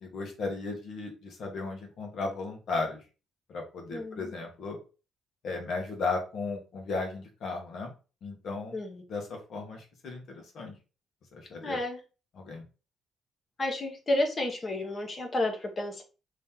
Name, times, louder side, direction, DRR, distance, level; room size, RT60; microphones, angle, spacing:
voice 1, 0.0-3.0 3.5-4.8 5.4-7.9 8.2-8.8 9.1-10.7 11.3-11.8 12.4-12.6, left 3 dB, 70° left, 2 dB, 1.3 m, -35 dB
voice 2, 3.9-4.3 8.7-9.0 11.6-12.0 13.6-16.0, left 1 dB, 35° left, 2 dB, 0.9 m, -31 dB
3.1 x 2.9 x 3.6 m, 0.33 s
cardioid pair, 90°, 0 cm